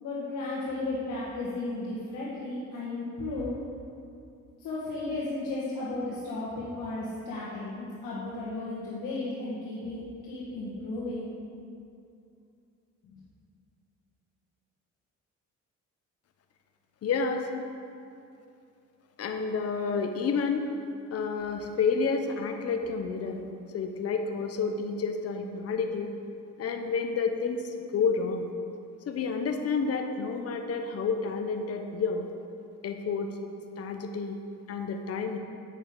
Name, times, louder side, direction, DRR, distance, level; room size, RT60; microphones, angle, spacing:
voice 1, 0.0-3.6 4.6-11.3 13.0-13.1, left 2 dB, 80° left, -8 dB, 1.6 m, -34 dB
voice 2, 17.0-17.5 19.2-20.7 21.1-23.4 23.7-26.1 26.6-28.5 29.1-32.3 32.8-33.3 33.8-34.4 34.7-35.4, left 5 dB, 55° left, 5 dB, 0.8 m, -30 dB
8.8 x 6.8 x 4.6 m, 2.5 s
cardioid pair, 90°, 30 cm